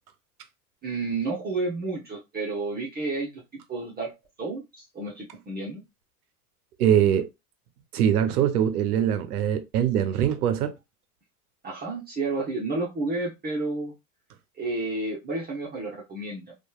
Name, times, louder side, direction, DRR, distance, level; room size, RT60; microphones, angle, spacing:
voice 1, 0.8-3.4 3.7-4.1 4.4-4.6 4.9-5.8 11.6-13.9 14.6-16.5, right 3 dB, 20° right, 0.8 m, -30 dB
voice 2, 6.8-7.3 7.9-10.7, right 9 dB, 85° right, 0.6 m, -22 dB
2.9 x 2.3 x 2.2 m
hypercardioid pair, 85°, 44 cm